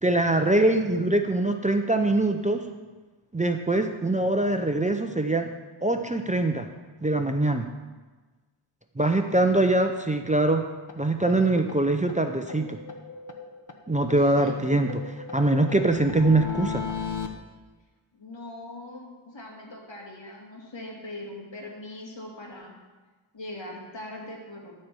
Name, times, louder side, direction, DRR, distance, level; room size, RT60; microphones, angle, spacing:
voice 1, 0.0-2.6 3.3-5.5 5.8-6.7 7.0-7.7 9.0-10.6 11.0-12.8 13.9-14.9 15.3-16.8, right 2 dB, 15° right, 5 dB, 0.6 m, -23 dB
voice 2, 0.9-1.5 14.2-14.8 18.1-22.7 23.3-24.7, left 1 dB, 65° left, -2 dB, 2.5 m, -41 dB
sound 1, 10.9-11.0 11.3-11.4 11.7-11.8 12.1-12.2 12.5-13.8 14.1-17.3, left 5 dB, 40° left, 1.0 m, -36 dB
13.0 x 4.4 x 6.9 m, 1.3 s
wide cardioid pair, 80°, 47 cm